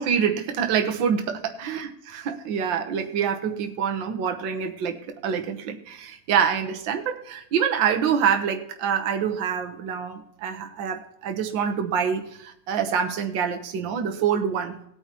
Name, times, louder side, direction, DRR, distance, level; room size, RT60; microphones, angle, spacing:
voice 1, 0.0-5.0 5.2-14.8, right 7 dB, 75° right, 5 dB, 1.7 m, -26 dB
18.5 x 9.2 x 2.9 m, 0.75 s
omnidirectional pair, 2.1 m